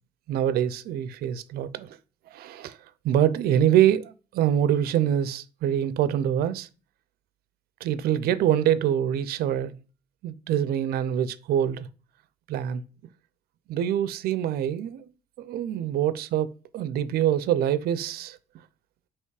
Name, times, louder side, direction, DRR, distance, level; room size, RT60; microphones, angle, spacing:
voice 1, 0.3-2.0 2.3-2.8 3.0-6.7 7.8-9.8 10.2-11.9 12.5-12.8 13.7-15.1 15.4-18.4, right 10 dB, 65° right, 0.4 m, -25 dB
3.3 x 3.0 x 4.7 m
cardioid pair, 110°, 17 cm